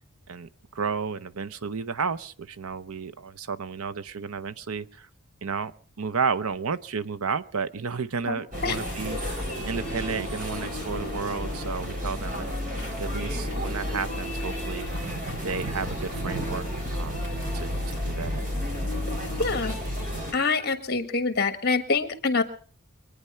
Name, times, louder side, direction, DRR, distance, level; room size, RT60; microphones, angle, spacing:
voice 1, 0.3-5.1 5.4-5.7 6.0-12.6 13.0-14.9 15.4-16.7 16.9-17.2 17.5-18.5, right 5 dB, 80° right, 13 dB, 0.7 m, -32 dB
sound 1, 8.5-20.3, equal, 35° right, 3.8 m, -31 dB
voice 2, 19.4-19.7 20.3-22.4, left 4 dB, 45° left, 10 dB, 1.6 m, -25 dB
24.5 x 9.6 x 5.6 m, 0.43 s
head